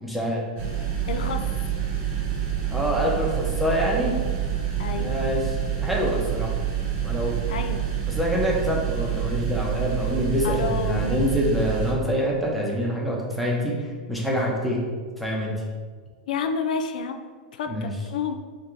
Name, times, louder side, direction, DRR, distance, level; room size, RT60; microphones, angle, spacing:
voice 1, 0.0-0.4 2.7-4.1 4.9-5.4 5.7-6.5 7.0-7.4 8.1-13.7 14.1-14.8 15.2-15.5 17.7-17.9, equal, ahead, -4 dB, 0.8 m, -25 dB
sound 1, 0.6-11.9, right 9 dB, 45° right, 1.0 m, -27 dB
voice 2, 1.1-1.4 4.8-5.2 7.5-7.9 10.4-11.1 16.3-17.2 17.5-18.4, left 5 dB, 80° left, 6 dB, 0.4 m, -29 dB
3.8 x 2.8 x 4.4 m, 1.5 s
supercardioid pair, 145°, 4 cm